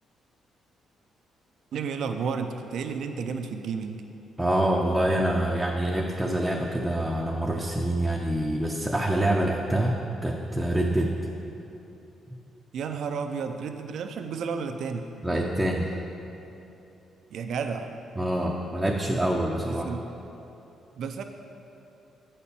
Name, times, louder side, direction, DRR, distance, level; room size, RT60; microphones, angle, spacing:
voice 1, 1.7-4.0 12.7-15.0 17.3-17.9 19.7-20.1 21.0-21.2, right 5 dB, 70° right, 6 dB, 0.5 m, -32 dB
voice 2, 4.4-11.1 15.2-15.9 18.2-19.9, right 1 dB, 10° right, -1 dB, 0.6 m, -26 dB
8.2 x 4.3 x 6.8 m, 3.0 s
cardioid pair, 90°, 0 cm